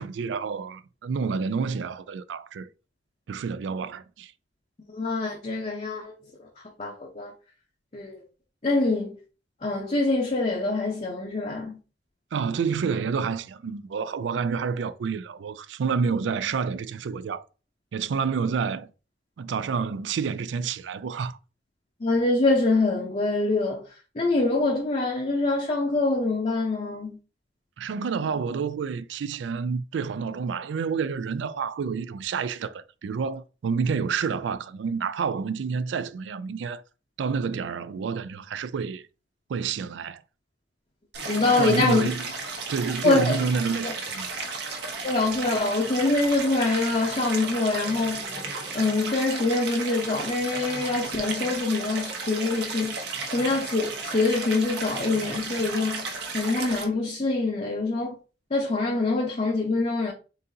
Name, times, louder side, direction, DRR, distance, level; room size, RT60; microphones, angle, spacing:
voice 1, 0.0-2.7 3.3-4.3 12.3-17.4 17.9-18.9 19.4-21.4 27.8-36.8 37.2-39.0 39.5-40.2 41.6-42.2 42.7-44.4, right 5 dB, 85° right, 0.3 m, -29 dB
voice 2, 4.9-6.1 6.8-7.3 7.9-8.2 8.6-9.1 9.6-11.8 22.0-23.8 24.2-27.1 41.3-42.1 43.0-43.4 43.8-43.9 45.0-48.2 48.7-53.0 53.3-58.1 58.5-60.1, left 3 dB, 35° left, 0.7 m, -25 dB
Stream, 41.1-56.9, right 4 dB, 65° right, 0.9 m, -34 dB
4.0 x 3.8 x 2.7 m
head